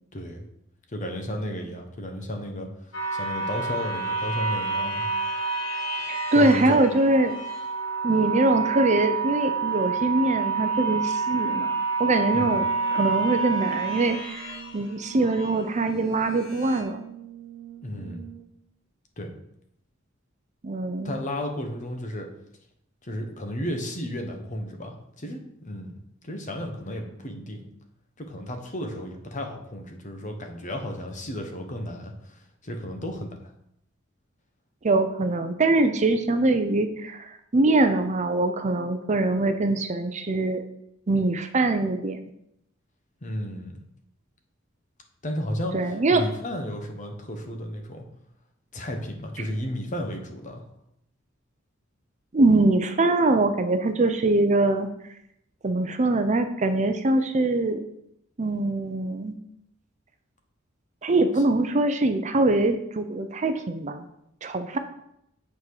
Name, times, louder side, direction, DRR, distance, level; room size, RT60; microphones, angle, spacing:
voice 1, 0.1-0.4 0.9-2.7 3.1-5.0 6.3-6.8 12.3-12.6 17.8-18.2 19.2-19.3 21.0-22.3 23.0-25.9 26.2-27.7 28.2-33.3 43.2-43.8 45.2-48.0 48.7-50.6 61.4-61.5, left 1 dB, 40° left, 4 dB, 1.1 m, -33 dB
sound 1, 2.9-15.6 16.2-16.8, right 4 dB, 70° left, 1.7 m, -29 dB
voice 2, 6.1-7.3 8.0-17.0 20.6-21.2 34.8-40.6 41.1-42.2 45.7-46.2 52.3-54.9 55.6-57.8 58.4-59.4 61.0-64.0 64.4-64.8, right 2 dB, 35° right, 7 dB, 0.6 m, -23 dB
Brass instrument, 12.2-18.6, right 12 dB, 70° right, 1.5 m, -45 dB
8.4 x 4.4 x 4.8 m, 0.77 s
head